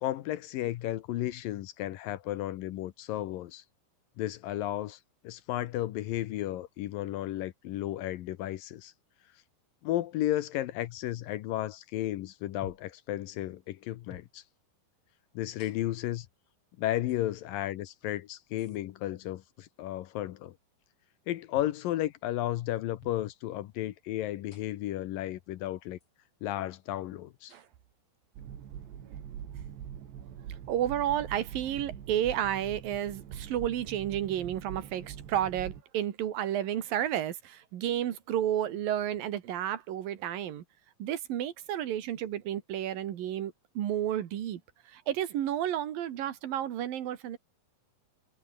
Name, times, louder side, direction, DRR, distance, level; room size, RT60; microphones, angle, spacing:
voice 1, 0.0-3.6 4.2-5.0 5.2-8.9 9.8-14.4 15.3-16.3 16.8-20.6 21.3-26.0 26.4-27.5, left 14 dB, 70° left, 2.2 m, -33 dB
sound 1, 12.6-13.0 14.1-14.3 15.6-16.1 17.1-17.2 18.6-18.8 21.5-21.8 23.0-23.3 24.5-24.9 26.0-26.1 27.5-27.7, left 5 dB, 35° left, 4.0 m, -52 dB
sound 2, 28.4-35.8, right 9 dB, 80° right, 5.1 m, -43 dB
voice 2, 30.7-40.6 41.0-44.6 44.9-47.4, right 11 dB, 60° right, 3.2 m, -31 dB
omnidirectional pair, 5.0 m